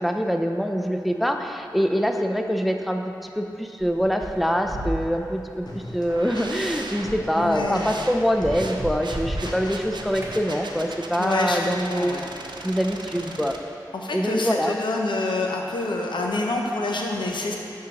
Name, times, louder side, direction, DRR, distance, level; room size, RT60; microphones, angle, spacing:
voice 1, 0.0-12.2 12.6-13.6 14.1-14.8, equal, ahead, 5 dB, 0.4 m, -24 dB
sound 1, 3.8-10.4, right 1 dB, 35° right, 1.0 m, -36 dB
sound 2, 5.7-6.7 7.0-8.1 8.4-8.8 9.1-10.9, left 1 dB, 60° left, 0.9 m, -40 dB
sound 3, 6.1-13.6, right 2 dB, 70° right, 0.5 m, -38 dB
voice 2, 7.3-8.0 11.2-12.3 13.2-13.4 13.9-17.6, left 2 dB, 85° left, 0 dB, 0.6 m, -27 dB
10.5 x 3.7 x 2.9 m, 2.6 s
cardioid pair, 40°, 8 cm